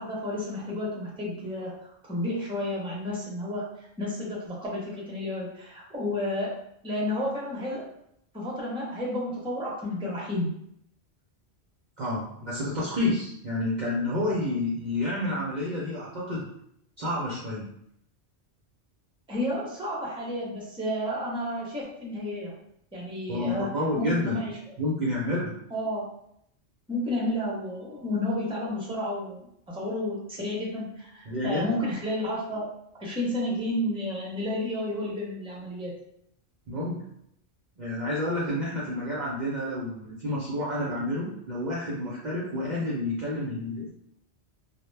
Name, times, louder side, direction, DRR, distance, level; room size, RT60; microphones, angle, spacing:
voice 1, 0.0-3.6 4.0-6.5 6.8-7.9 8.3-10.5 19.3-22.5 22.9-23.7 24.0-24.7 25.7-26.0 26.9-32.7 32.9-35.9, left 1 dB, 5° right, -4 dB, 0.5 m, -31 dB
voice 2, 12.0-16.4 17.0-17.7 23.3-24.4 24.8-25.6 31.3-31.7 36.7-37.0 37.8-43.9, left 1 dB, 55° right, -6 dB, 0.5 m, -29 dB
2.1 x 2.1 x 3.1 m, 0.73 s
omnidirectional pair, 1.1 m